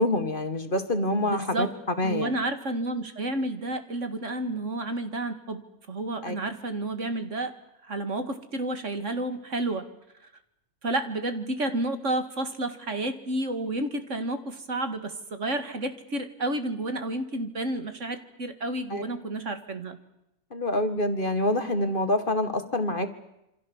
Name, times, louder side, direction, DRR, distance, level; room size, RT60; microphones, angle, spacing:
voice 1, 0.0-1.7 2.0-2.3 6.2-6.4 18.9-19.0 20.5-23.1, left 1 dB, 35° left, 9 dB, 2.0 m, -26 dB
voice 2, 1.2-1.7 2.0-5.6 5.9-7.5 7.9-9.9 10.8-20.0, right 2 dB, 55° right, 9 dB, 2.2 m, -30 dB
28.0 x 25.5 x 7.2 m, 0.85 s
omnidirectional pair, 1.5 m